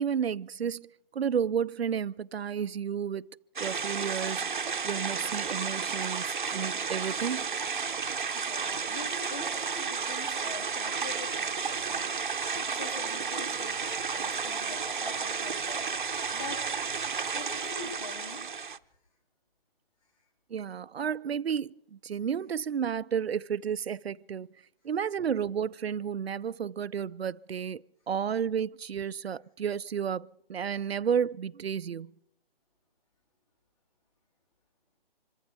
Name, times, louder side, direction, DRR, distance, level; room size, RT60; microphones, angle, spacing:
voice 1, 0.0-7.4 20.5-24.5 24.8-32.1, right 7 dB, 85° right, 0.6 m, -32 dB
sound 1, 3.6-18.8, right 6 dB, 55° right, 0.8 m, -32 dB
voice 2, 8.3-12.1 12.5-15.8 16.3-16.7 17.3-18.5, left 3 dB, 35° left, 7.9 m, -44 dB
26.5 x 14.5 x 3.5 m
hypercardioid pair, 175°, 30 cm